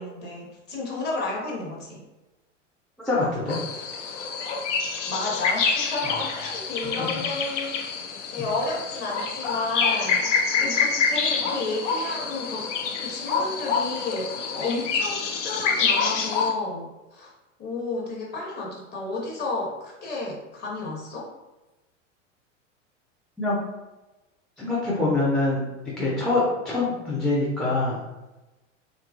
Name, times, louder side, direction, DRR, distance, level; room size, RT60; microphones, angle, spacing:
voice 1, 0.0-2.0 5.1-8.0 8.3-10.3 10.6-12.7 13.0-17.3 17.6-21.3, left 3 dB, 25° left, -3 dB, 0.9 m, -31 dB
voice 2, 3.0-3.6 23.4-23.6 24.6-25.6 26.0-28.0, left 2 dB, ahead, -6 dB, 0.4 m, -24 dB
sound 1, 3.5-16.5, left 5 dB, 70° left, 0.5 m, -27 dB
2.8 x 2.3 x 2.4 m, 1.1 s
figure-of-eight pair, 85°, 37 cm